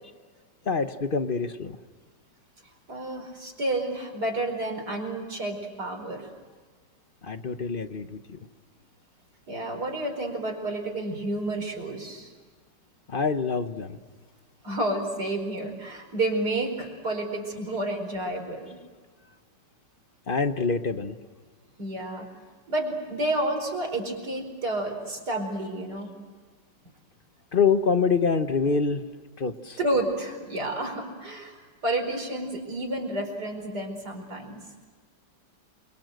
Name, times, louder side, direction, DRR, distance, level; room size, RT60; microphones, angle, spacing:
voice 1, 0.7-1.8 7.2-8.4 13.1-13.9 20.3-21.1 27.5-29.0 29.4-29.8, left 5 dB, 40° left, 9 dB, 0.9 m, -25 dB
voice 2, 2.9-6.3 9.5-12.3 14.6-18.8 21.8-22.3 22.7-26.1 29.8-34.6, right 1 dB, 60° right, 3 dB, 5.3 m, -30 dB
29.0 x 23.5 x 7.8 m, 1.5 s
omnidirectional pair, 2.0 m